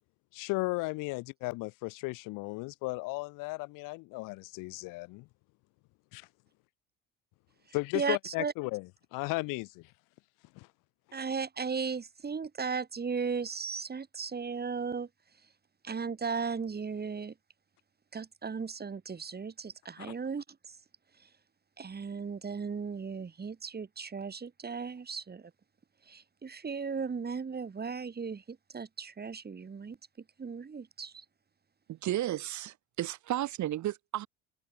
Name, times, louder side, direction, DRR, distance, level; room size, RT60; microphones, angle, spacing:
voice 1, 0.3-5.3 6.1-6.3 7.7-9.9 10.5-10.7 20.0-20.1, left 24 dB, 60° left, 1.1 m, -35 dB
voice 2, 7.9-8.5 11.1-15.1 15.8-17.3 18.1-20.8 21.8-25.5 26.1-30.0 30.4-31.2, right 5 dB, 25° right, 3.5 m, -36 dB
voice 3, 31.9-34.3, right 13 dB, 50° right, 2.6 m, -33 dB
hypercardioid pair, 65°, 37 cm